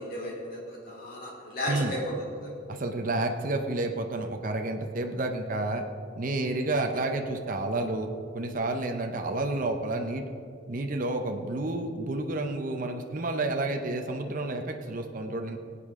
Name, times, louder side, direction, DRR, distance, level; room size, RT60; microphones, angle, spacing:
voice 1, 0.0-2.1 2.4-2.5, left 1 dB, 50° left, -3 dB, 3.4 m, -34 dB
voice 2, 2.7-5.8 6.2-8.1 8.3-10.2 10.7-15.6, right 2 dB, 45° right, 4 dB, 0.7 m, -30 dB
20.0 x 8.5 x 3.7 m, 2.5 s
head